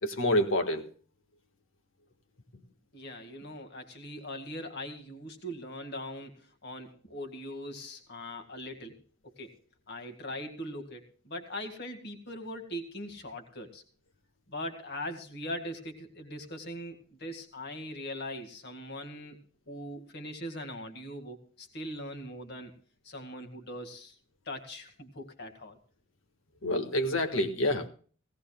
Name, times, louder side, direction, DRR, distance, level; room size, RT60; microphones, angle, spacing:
voice 1, 0.0-0.8 26.6-27.9, left 1 dB, 85° left, 7 dB, 1.6 m, -27 dB
voice 2, 2.9-9.5 9.9-13.8 14.5-19.4 19.7-22.7 23.0-24.2 24.5-25.8, left 1 dB, 55° left, 5 dB, 1.9 m, -41 dB
18.0 x 17.0 x 2.3 m, 0.42 s
head